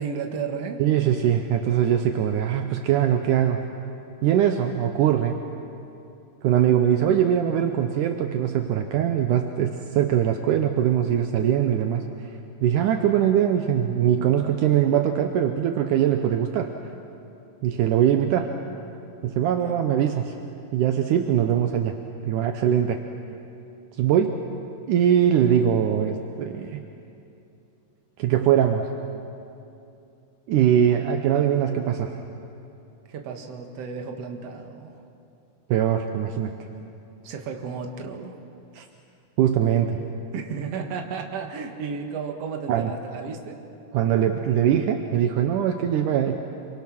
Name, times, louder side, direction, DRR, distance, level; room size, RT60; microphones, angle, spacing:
voice 1, 0.0-0.8 19.6-19.9 33.1-35.0 37.2-38.4 40.3-43.6, right 5 dB, 55° right, 3 dB, 2.5 m, -33 dB
voice 2, 0.8-3.7 4.2-5.4 6.4-12.1 12.6-16.7 17.6-18.5 19.2-20.3 20.7-22.0 22.3-23.0 24.0-24.4 24.9-26.8 28.2-29.0 30.5-32.2 35.7-36.5 38.8-38.9 39.4-40.0 42.7-42.9 43.9-46.4, right 10 dB, 75° right, 5 dB, 2.3 m, -22 dB
27.5 x 24.5 x 6.0 m, 2.7 s
omnidirectional pair, 3.8 m